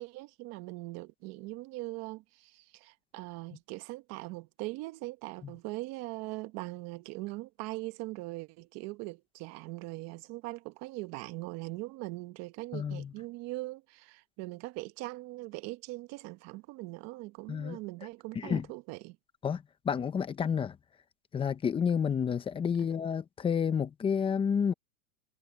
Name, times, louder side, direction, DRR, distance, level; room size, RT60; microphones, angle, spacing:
voice 1, 0.0-19.2 22.8-22.9, right 21 dB, 35° right, 1.1 m, -41 dB
voice 2, 12.7-13.1 17.5-17.8 18.4-18.6 19.4-20.8 21.3-24.7, left 7 dB, 10° left, 0.8 m, -30 dB
supercardioid pair, 145°, 45 cm